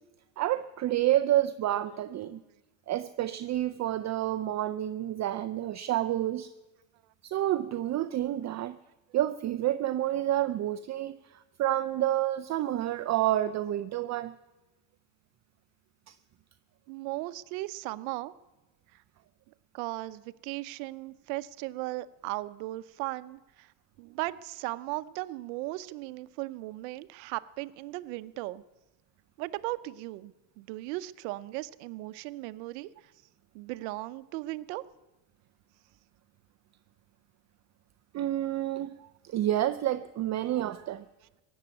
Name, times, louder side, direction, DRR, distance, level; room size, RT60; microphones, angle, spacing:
voice 1, 0.4-2.4 2.9-6.5 7.2-8.8 9.1-14.3 16.1-16.2 38.1-41.0, right 13 dB, 35° right, 11 dB, 0.5 m, -29 dB
voice 2, 16.9-18.3 19.7-23.7 24.0-28.6 29.4-32.9 33.5-34.8, right 19 dB, 75° right, 15 dB, 0.8 m, -37 dB
16.0 x 7.2 x 9.5 m, 1.1 s
supercardioid pair, 100°, 48 cm